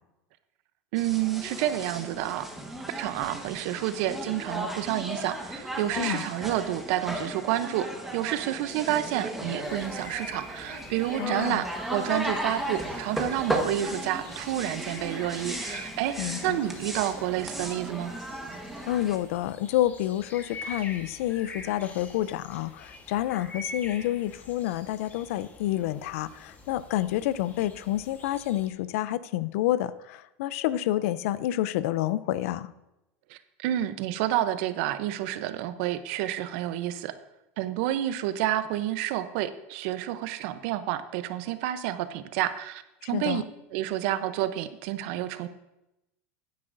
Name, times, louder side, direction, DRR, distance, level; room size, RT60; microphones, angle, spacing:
voice 1, 0.9-2.5 3.0-18.1 33.3-37.1 37.6-43.4 43.7-45.5, right 13 dB, 60° right, 12 dB, 0.7 m, -29 dB
sound 1, 1.0-19.2, right 1 dB, 5° right, 1.3 m, -36 dB
sound 2, 9.6-28.7, left 3 dB, 20° left, 1.2 m, -46 dB
voice 2, 11.2-11.6 16.2-16.6 18.9-32.7 43.0-43.4, left 13 dB, 75° left, 17 dB, 0.5 m, -29 dB
14.0 x 9.6 x 2.6 m, 0.92 s
supercardioid pair, 135°, 8 cm